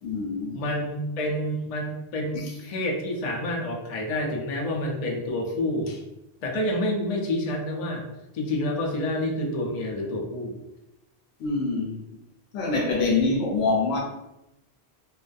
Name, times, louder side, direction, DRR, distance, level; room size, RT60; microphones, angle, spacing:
voice 1, 0.0-0.6 2.3-2.4 11.4-12.0 12.5-14.0, left 3 dB, 75° left, 0 dB, 0.8 m, -25 dB
voice 2, 0.5-6.0 6.4-8.1 8.3-10.6, left 1 dB, 55° left, 0 dB, 0.4 m, -28 dB
2.5 x 2.3 x 2.2 m, 0.90 s
omnidirectional pair, 1.1 m